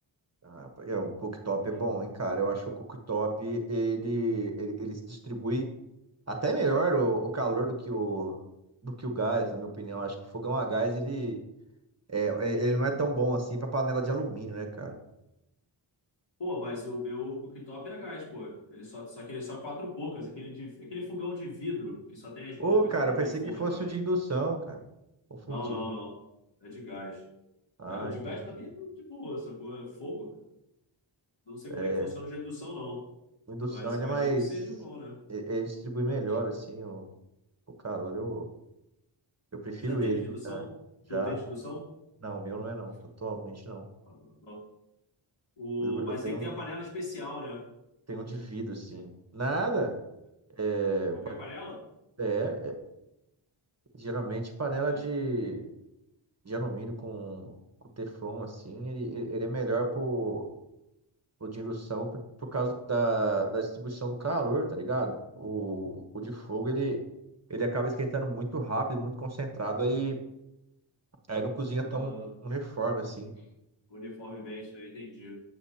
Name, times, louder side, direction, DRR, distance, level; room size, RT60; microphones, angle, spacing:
voice 1, 0.4-5.6 6.3-8.3 8.8-11.4 12.1-15.0 22.6-24.8 25.5-25.8 27.8-28.1 31.7-32.1 33.5-34.4 35.3-37.1 37.8-38.4 39.6-40.6 41.1-41.4 42.2-42.9 43.2-43.8 45.8-46.5 48.1-49.9 50.6-51.4 52.2-52.8 54.0-55.6 56.4-57.5 58.0-60.5 61.4-62.1 62.5-67.0 67.5-70.2 71.3-72.1 72.4-73.3, right 2 dB, 30° right, 4 dB, 1.1 m, -31 dB
voice 2, 16.4-23.9 25.4-26.2 26.6-27.2 27.9-30.4 31.5-33.1 33.7-35.2 36.3-36.4 39.8-40.8 41.1-41.9 44.1-44.6 45.6-47.7 51.1-51.9 54.7-55.0 71.8-72.3 73.4-73.5 73.9-75.4, left 2 dB, 55° left, -4 dB, 2.9 m, -39 dB
7.9 x 7.9 x 2.8 m, 0.88 s
wide cardioid pair, 75°, 49 cm